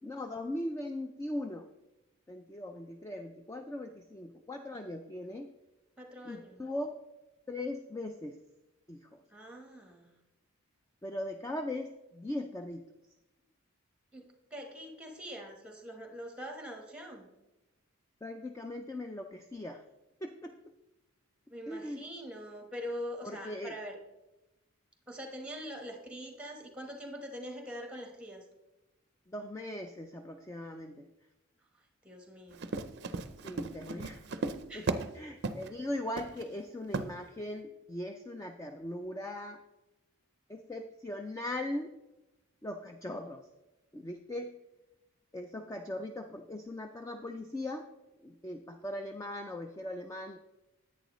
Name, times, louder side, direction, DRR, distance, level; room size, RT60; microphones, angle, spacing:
voice 1, 0.0-1.7 2.3-5.5 6.2-7.0 7.5-8.4 8.9-9.2 11.0-12.8 18.2-19.8 20.2-20.5 21.7-22.0 23.2-23.7 29.3-31.1 33.4-34.2 34.7-34.9 35.1-39.6 40.5-41.9 42.6-43.5 43.9-44.5 45.3-47.9 48.2-50.4, left 1 dB, 15° left, 5 dB, 0.3 m, -39 dB
voice 2, 6.0-6.6 9.3-10.1 14.1-17.3 21.5-24.0 25.1-28.4 32.0-32.7 34.7-34.9, equal, 5° right, 3 dB, 1.1 m, -43 dB
Run, 32.5-35.1 35.4-35.7 36.2-36.4 36.9-37.1, right 3 dB, 50° right, 0.5 m, -35 dB
10.5 x 8.5 x 3.1 m, 1.0 s
head